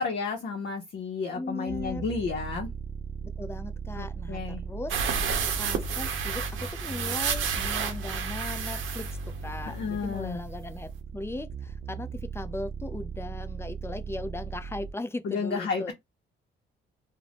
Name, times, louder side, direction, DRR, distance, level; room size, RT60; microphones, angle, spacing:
voice 1, 0.0-2.7 4.0-4.6 9.6-10.4 15.2-15.9, left 5 dB, 60° left, 0.6 m, -32 dB
voice 2, 1.3-2.0 3.4-5.0 5.6-9.2 9.4-15.9, left 2 dB, 10° left, 0.4 m, -38 dB
sound 1, 1.7-14.9, right 4 dB, 40° right, 0.5 m, -38 dB
sound 2, 4.9-10.2 10.5-10.6 10.9-11.0, right 6 dB, 80° right, 0.6 m, -31 dB
2.4 x 2.0 x 3.2 m
cardioid pair, 90°, 20 cm